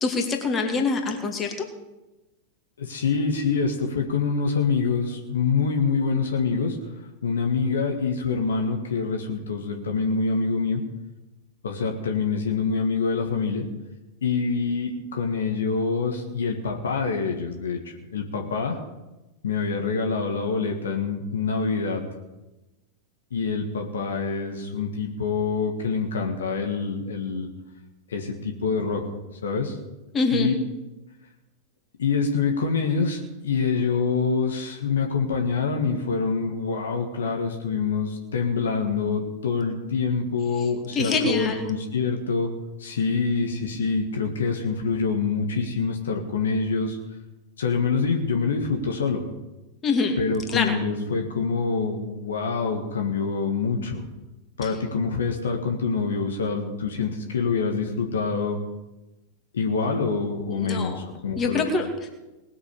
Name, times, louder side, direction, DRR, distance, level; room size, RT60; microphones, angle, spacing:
voice 1, 0.0-1.7 30.1-30.5 40.9-41.7 49.8-50.2 50.5-50.8 54.6-54.7 60.5-61.0 61.4-62.1, left 4 dB, 25° left, 3 dB, 2.4 m, -25 dB
voice 2, 2.8-6.8 7.2-10.8 11.6-13.6 14.2-18.8 19.4-22.0 23.3-27.5 28.1-29.0 29.4-29.8 30.3-30.5 32.0-42.5 42.8-47.0 47.6-49.3 50.2-54.0 54.6-58.6 59.5-61.6, left 5 dB, 65° left, 3 dB, 1.8 m, -26 dB
19.5 x 7.3 x 7.0 m, 1.0 s
figure-of-eight pair, 90°, 0 cm